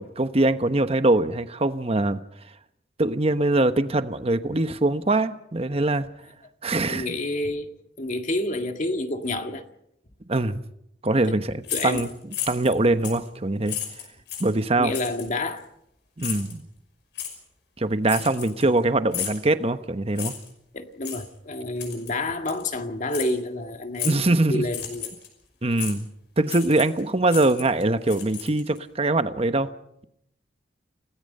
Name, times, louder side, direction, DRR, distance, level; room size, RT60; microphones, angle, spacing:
voice 1, 0.0-2.2 3.0-6.1 6.6-7.1 10.3-10.6 11.0-12.1 12.5-13.8 14.4-14.9 16.2-16.7 17.8-20.3 24.0-24.6 25.6-26.1 26.4-29.7, right 2 dB, 35° right, 1.1 m, -23 dB
voice 2, 6.9-9.6 11.3-11.4 11.7-12.1 14.8-15.7 20.7-25.1, left 2 dB, 45° left, 1.9 m, -29 dB
sound 1, 11.6-12.7 13.0-13.3 13.7-14.5 14.9-15.3 16.2-16.5 17.2-17.3 18.1-18.8 19.1-19.4 20.2-20.5 21.0-21.2 21.8-22.1 22.5-22.6 23.1-23.3 24.0-24.3 24.7-25.3 25.8-26.0 26.5-27.0 27.3-28.8, left 10 dB, 70° left, 5.5 m, -33 dB
29.5 x 18.0 x 5.5 m
head